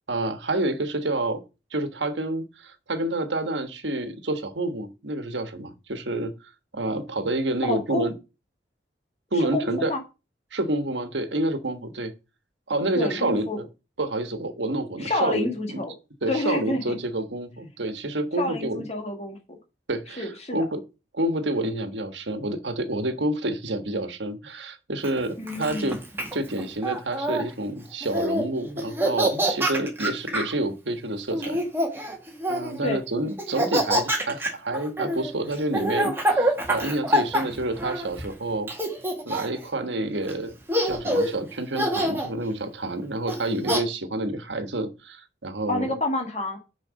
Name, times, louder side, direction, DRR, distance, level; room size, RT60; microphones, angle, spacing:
voice 1, 0.1-1.4 1.7-6.3 6.7-8.1 9.3-9.9 10.5-12.1 12.7-13.7 14.0-15.8 16.2-18.9 19.9-20.8 21.1-26.0 26.3-31.6 32.5-38.7 39.2-40.5 40.8-45.9, right 2 dB, 85° right, 1.4 m, -28 dB
voice 2, 7.6-8.1 9.3-10.0 13.0-13.6 15.0-15.9 16.3-16.8 18.4-19.6 20.2-20.7 25.4-25.9 32.8-33.0 45.7-46.6, left 2 dB, 35° left, 1.7 m, -28 dB
Laughter, 25.0-27.4 28.0-28.4 28.8-30.5 31.3-32.8 33.4-38.3 38.7-39.6 40.3-40.4 40.7-41.3 41.7-42.3 43.3-43.8, right 1 dB, 15° right, 1.9 m, -26 dB
6.6 x 5.0 x 6.3 m
head